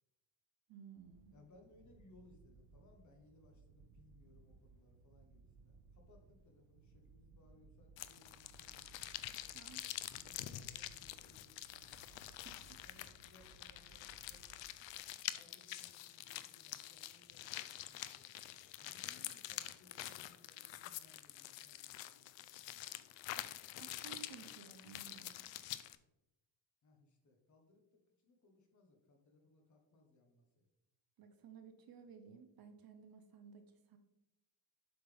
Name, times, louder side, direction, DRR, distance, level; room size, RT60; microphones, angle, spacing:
voice 1, 0.7-1.4 9.5-9.8 12.4-12.8 23.3-23.5 23.8-25.5 31.2-34.0, right 7 dB, 45° right, 8 dB, 0.7 m, -57 dB
sound 1, 0.9-15.2, right 4 dB, 75° right, 1.0 m, -64 dB
voice 2, 1.3-9.6 10.1-11.9 12.3-14.7 15.3-18.3 18.8-22.6 26.8-30.7, left 2 dB, 35° left, 2 dB, 1.3 m, -67 dB
sound 2, 8.0-26.0, left 14 dB, 65° left, 0.5 m, -47 dB
7.9 x 5.5 x 3.4 m, 0.91 s
cardioid pair, 175°, 49 cm